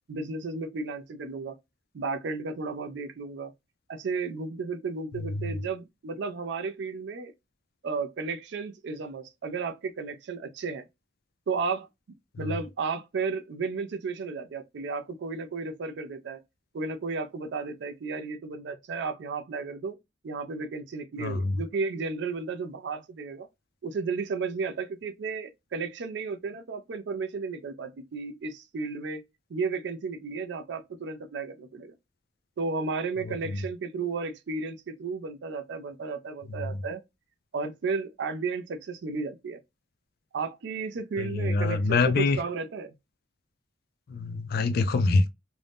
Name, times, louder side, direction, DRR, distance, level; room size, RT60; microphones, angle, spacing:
voice 1, 0.1-1.6 1.9-3.5 3.9-7.3 7.8-10.8 11.5-11.9 12.4-16.4 16.7-20.0 20.2-23.5 23.8-29.2 29.5-31.9 32.6-37.0 37.5-39.6 40.3-42.9, right 4 dB, 65° right, 0.4 m, -33 dB
voice 2, 5.1-5.5 12.3-12.5 21.2-21.5 33.3-33.6 36.5-36.6 41.2-42.4 44.1-45.3, left 3 dB, 55° left, 0.4 m, -26 dB
2.5 x 2.0 x 3.3 m
head